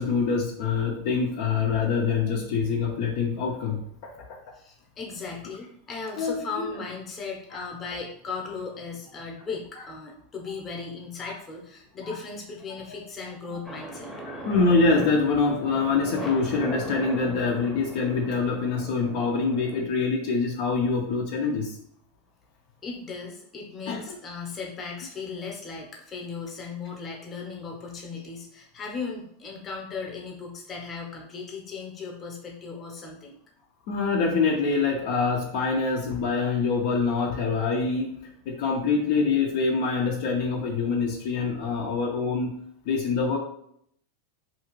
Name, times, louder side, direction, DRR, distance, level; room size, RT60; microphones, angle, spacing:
voice 1, 0.0-4.1 6.2-6.7 7.5-7.7 11.2-11.4 12.0-12.2 13.5-13.6 14.3-21.8 23.9-24.2 33.9-42.5 42.8-43.4, left 4 dB, 65° left, 0 dB, 0.6 m, -25 dB
voice 2, 4.5-14.5 22.8-33.4, left 4 dB, 30° left, 0 dB, 0.9 m, -37 dB
sound 1, 13.6-19.8, equal, ahead, 0.8 m, -39 dB
2.8 x 2.4 x 3.0 m, 0.68 s
hypercardioid pair, 115°, 0 cm